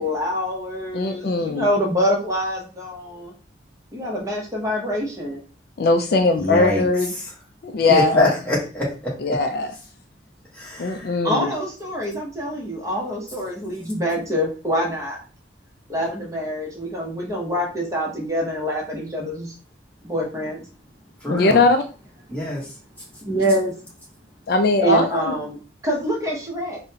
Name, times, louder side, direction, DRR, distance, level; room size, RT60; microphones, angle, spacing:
voice 1, 0.0-3.3 3.9-5.4 11.2-15.2 15.9-19.5 20.0-20.6 21.2-21.6 23.2-23.7 24.8-26.8, equal, 15° right, -1 dB, 0.7 m, -25 dB
voice 2, 0.9-1.7 5.8-7.1 7.6-8.3 9.2-9.7 10.8-11.5 21.3-21.8 24.5-25.3, left 3 dB, 55° left, 6 dB, 0.3 m, -19 dB
voice 3, 6.4-6.8 7.9-9.4 10.5-11.1 21.2-21.6 22.3-22.7, left 1 dB, 10° left, -5 dB, 1.1 m, -24 dB
3.8 x 2.1 x 2.7 m, 0.37 s
head